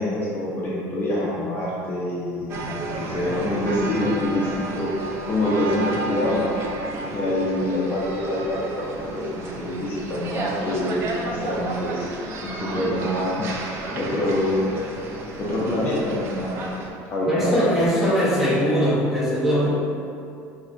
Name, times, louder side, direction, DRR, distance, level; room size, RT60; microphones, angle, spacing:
voice 1, 0.0-6.5 7.1-12.1 12.4-13.4 13.9-14.6 15.4-16.6 17.1-17.7, left 1 dB, 30° left, -7 dB, 0.5 m, -26 dB
sound 1, 2.5-16.9, right 2 dB, 40° right, 0.3 m, -32 dB
voice 2, 17.3-19.7, equal, 5° right, -9 dB, 0.8 m, -20 dB
4.7 x 2.1 x 2.4 m, 2.5 s
cardioid pair, 155°, 7 cm